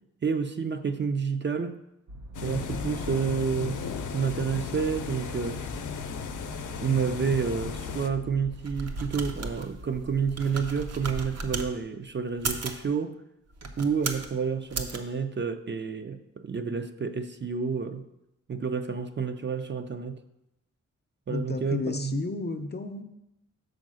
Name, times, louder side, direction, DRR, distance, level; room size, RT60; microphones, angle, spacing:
voice 1, 0.2-1.8 2.4-3.8 4.1-5.6 6.8-13.2 13.8-18.0 18.5-20.2 21.3-22.2, right 6 dB, 40° right, 0.4 m, -29 dB
sound 1, 2.1-9.2, equal, 90° right, 0.7 m, -45 dB
sound 2, 2.3-8.1, left 6 dB, 85° left, 0.6 m, -35 dB
sound 3, 8.5-11.7 12.3-12.8 13.5-14.3 14.7-15.0, right 3 dB, 60° right, 0.7 m, -35 dB
voice 2, 21.3-23.0, left 3 dB, 35° left, 0.5 m, -32 dB
6.4 x 4.6 x 6.2 m
wide cardioid pair, 155°, 30 cm